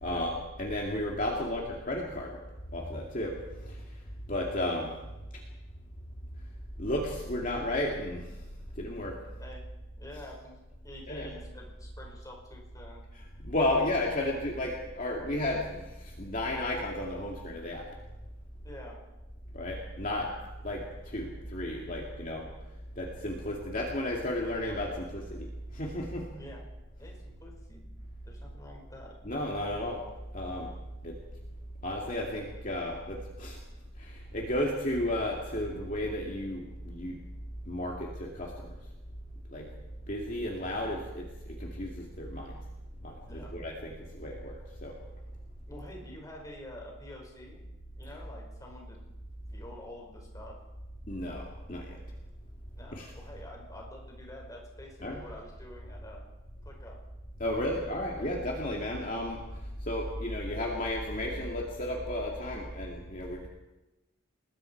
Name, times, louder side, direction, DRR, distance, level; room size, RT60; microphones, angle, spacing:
voice 1, 0.0-2.3 2.7-3.4 3.7-3.8 4.3-4.9 6.8-8.2 8.8-9.1 11.1-11.3 13.4-17.8 19.5-20.3 20.6-22.5 23.0-25.5 25.7-26.3 29.2-30.0 30.3-30.7 31.0-31.1 31.8-33.6 34.0-37.2 37.7-38.5 39.5-39.7 40.1-41.3 41.6-42.5 43.0-44.6 44.8-44.9 51.1-52.0 52.9-53.1 55.0-55.2 57.4-59.4 59.9-63.5, left 1 dB, 40° left, -1 dB, 2.4 m, -33 dB
voice 2, 1.3-1.7 9.4-9.6 10.0-10.5 10.8-13.0 18.6-19.0 26.3-26.6 27.0-27.9 28.3-29.1 43.2-43.6 45.7-47.7 48.0-49.0 49.5-50.6 52.8-56.3 56.6-57.0 57.4-58.0, left 1 dB, 15° left, -1 dB, 5.4 m, -48 dB
29.5 x 20.0 x 4.7 m, 1.1 s
head